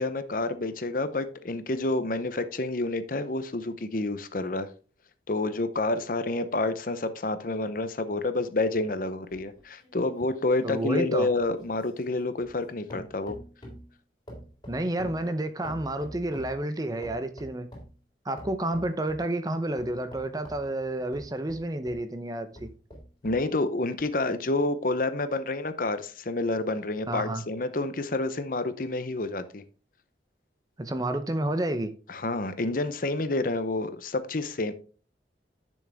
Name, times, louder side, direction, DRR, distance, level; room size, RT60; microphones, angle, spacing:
voice 1, 0.0-4.7 5.3-13.4 23.2-29.6 32.1-34.7, left 2 dB, 50° left, 0.8 m, -29 dB
sound 1, 9.3-12.6 12.9-13.9 14.3-16.6 17.0-18.0 18.4-19.3 19.8-22.1 22.5-23.5 24.0-24.1, equal, 25° left, 3.4 m, -46 dB
voice 2, 10.6-11.3 14.7-17.7 18.2-22.7 27.1-27.4 30.8-31.9, right 1 dB, 20° right, 0.7 m, -30 dB
10.5 x 6.3 x 3.5 m
head